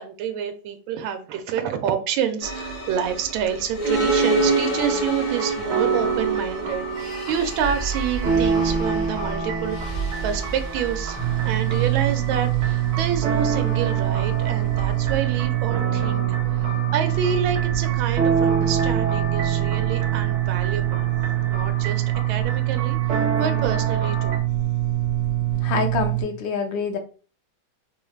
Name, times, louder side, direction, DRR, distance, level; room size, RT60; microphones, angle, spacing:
voice 1, 0.0-16.2 16.6-21.0 21.5-24.4, right 8 dB, 85° right, 7 dB, 1.4 m, -28 dB
sound 1, 2.4-15.2, right 3 dB, 55° left, 1.7 m, -28 dB
sound 2, 5.3-24.4, right 4 dB, 55° right, 1.5 m, -28 dB
sound 3, 11.2-26.2, right 15 dB, 5° right, 1.0 m, -24 dB
voice 2, 25.6-27.0, left 5 dB, 75° left, 5 dB, 1.4 m, -26 dB
4.6 x 3.2 x 2.3 m, 0.38 s
omnidirectional pair, 2.1 m